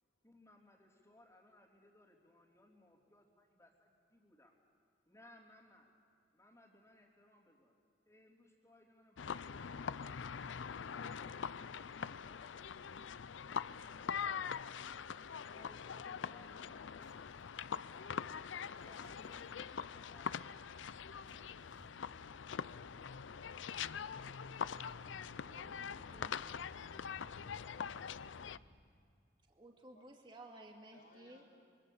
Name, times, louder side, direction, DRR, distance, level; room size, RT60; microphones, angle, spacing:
voice 1, 0.2-4.5 5.0-5.9 6.3-7.7 8.0-10.6 15.4-18.1 18.7-20.9, left 1 dB, 15° left, -8 dB, 3.3 m, -65 dB
sound 1, 9.2-28.6, left 7 dB, 90° left, 0.5 m, -43 dB
sound 2, 14.4-24.0, left 2 dB, 70° left, 4.0 m, -69 dB
sound 3, 20.8-28.8, equal, 85° right, 6.2 m, -62 dB
voice 2, 25.5-26.3 29.5-31.4, right 1 dB, 25° right, 1 dB, 2.4 m, -56 dB
voice 3, 30.9-31.4, left 2 dB, 55° left, -5 dB, 4.3 m, -67 dB
26.0 x 24.5 x 7.3 m, 2.2 s
head